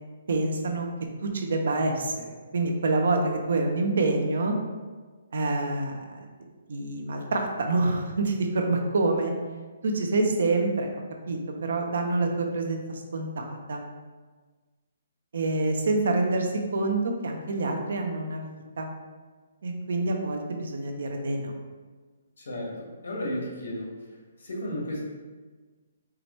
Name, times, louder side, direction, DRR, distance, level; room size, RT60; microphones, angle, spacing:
voice 1, 0.3-0.9 1.2-4.6 5.3-6.2 6.7-9.3 9.8-10.9 11.3-13.8 15.3-18.5 18.8-18.9 19.6-21.6, right 2 dB, 70° right, 3 dB, 0.7 m, -27 dB
voice 2, 22.4-24.1 24.4-25.1, left 1 dB, 85° left, -1 dB, 1.4 m, -33 dB
4.8 x 3.0 x 3.1 m, 1.4 s
hypercardioid pair, 165°, 0 cm